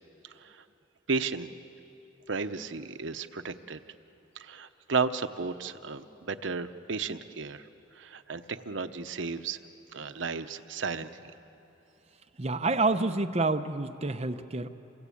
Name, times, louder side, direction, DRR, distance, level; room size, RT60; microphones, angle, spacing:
voice 1, 0.2-0.6 1.1-1.5 2.3-3.8 4.4-7.6 7.9-9.6 9.9-11.1, right 4 dB, 75° right, 10 dB, 0.9 m, -33 dB
voice 2, 12.4-14.7, right 3 dB, 35° right, 8 dB, 0.8 m, -28 dB
27.5 x 24.0 x 8.5 m, 3.0 s
head